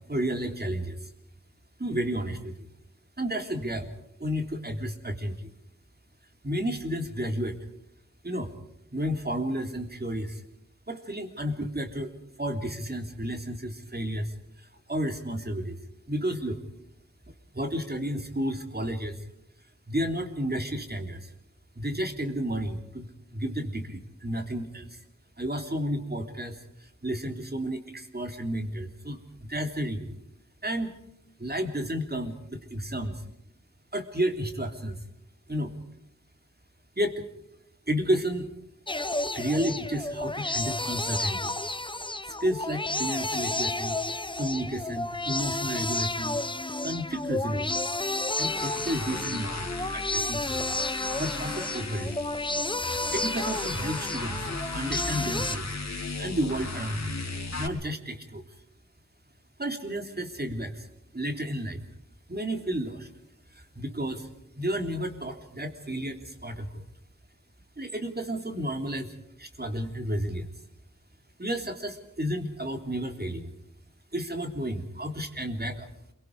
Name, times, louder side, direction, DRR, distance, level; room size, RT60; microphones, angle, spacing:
voice 1, 0.1-1.1 1.8-2.7 3.2-3.9 4.2-5.5 6.4-7.6 8.2-8.5 8.9-10.4 10.9-12.1 12.4-15.8 16.1-16.6 17.5-19.2 19.9-21.3 21.8-23.1 23.3-25.0 25.4-30.2 30.6-30.9 31.4-33.2 33.9-35.0 35.5-35.7 37.0-37.2 37.9-38.5 39.3-41.5 42.3-46.4 46.8-47.7 48.4-50.6 51.2-52.1 53.1-54.4 54.7-55.7 56.2-57.1 57.5-58.4 59.6-60.9 61.1-61.8 62.3-63.1 63.5-64.3 64.6-66.8 67.8-70.5 71.4-73.5 74.1-75.9, equal, 30° right, 4 dB, 3.4 m, -32 dB
sound 1, 38.9-55.6, left 2 dB, 15° left, 0.8 m, -31 dB
sound 2, 48.3-57.7, left 3 dB, 55° left, 3.2 m, -36 dB
28.5 x 23.5 x 4.9 m, 0.79 s
wide cardioid pair, 60°, 31 cm